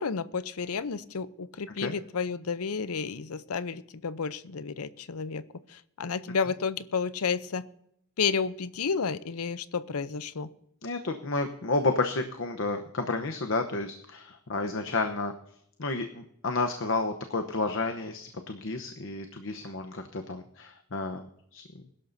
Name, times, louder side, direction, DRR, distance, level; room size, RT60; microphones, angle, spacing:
voice 1, 0.0-5.4 5.7-7.6 8.2-10.5, left 5 dB, 80° left, 15 dB, 0.7 m, -31 dB
voice 2, 10.8-15.3 15.8-21.3 21.5-21.6, left 3 dB, 60° left, 6 dB, 0.9 m, -31 dB
21.5 x 12.0 x 2.7 m, 0.72 s
head